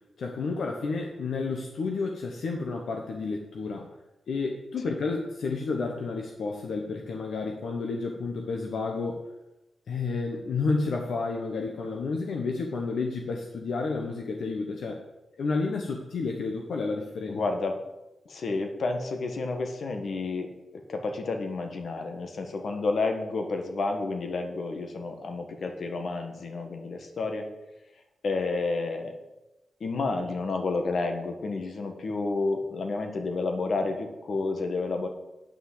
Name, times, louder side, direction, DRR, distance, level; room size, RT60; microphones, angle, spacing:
voice 1, 0.2-3.9 4.3-9.3 9.9-15.1 15.4-17.4, left 4 dB, 80° left, 2 dB, 1.1 m, -31 dB
voice 2, 17.3-17.8 18.2-27.5 28.2-29.2 29.8-35.1, left 3 dB, 60° left, 5 dB, 1.6 m, -30 dB
9.3 x 5.9 x 7.8 m, 0.96 s
wide cardioid pair, 110°, 0 cm